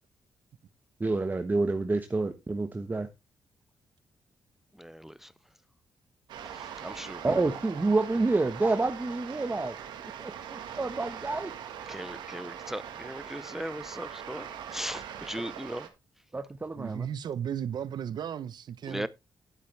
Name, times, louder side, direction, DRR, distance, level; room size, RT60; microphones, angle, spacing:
voice 1, 1.0-3.1 7.2-9.8 10.2-11.5 16.3-17.1, right 3 dB, 25° right, 1.2 m, -28 dB
voice 2, 4.8-5.3 6.5-7.2 11.9-15.9 18.9-19.1, equal, 5° right, 0.5 m, -38 dB
sound 1, 6.3-15.9, right 9 dB, 90° right, 1.8 m, -42 dB
voice 3, 16.8-19.1, right 9 dB, 70° right, 0.9 m, -35 dB
11.0 x 8.3 x 3.4 m
cardioid pair, 70°, 8 cm